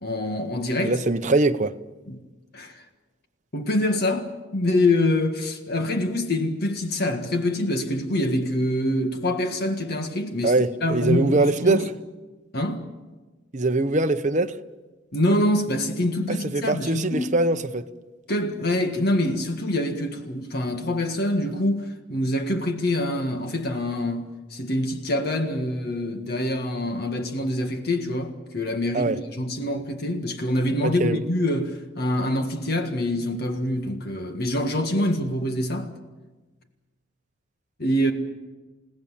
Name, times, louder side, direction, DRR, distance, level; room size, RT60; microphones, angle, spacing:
voice 1, 0.0-1.0 2.1-2.2 2.5-2.8 3.5-11.8 12.5-12.8 15.1-17.4 18.3-35.9 37.8-38.1, left 1 dB, 50° left, 1.7 m, -25 dB
voice 2, 0.8-1.7 10.4-11.9 13.5-14.5 16.3-17.9 28.9-29.2 30.8-31.2, right 2 dB, 40° right, 0.9 m, -22 dB
29.5 x 18.0 x 7.4 m
head